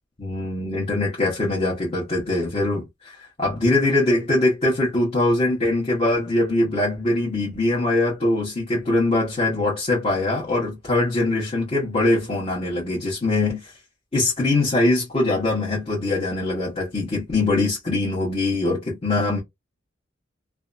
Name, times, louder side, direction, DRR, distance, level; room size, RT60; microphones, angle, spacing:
voice 1, 0.2-13.7 14.1-19.4, left 2 dB, 35° left, 1.0 m, -22 dB
2.6 x 2.2 x 2.5 m
head